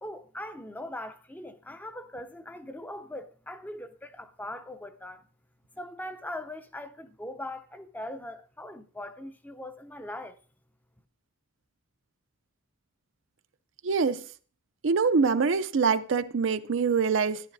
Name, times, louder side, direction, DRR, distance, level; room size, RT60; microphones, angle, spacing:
voice 1, 0.0-5.3 5.7-10.4, left 1 dB, 10° left, 0.5 m, -40 dB
voice 2, 13.8-14.2 14.8-17.4, right 5 dB, 60° right, 0.5 m, -24 dB
13.5 x 10.5 x 2.6 m
head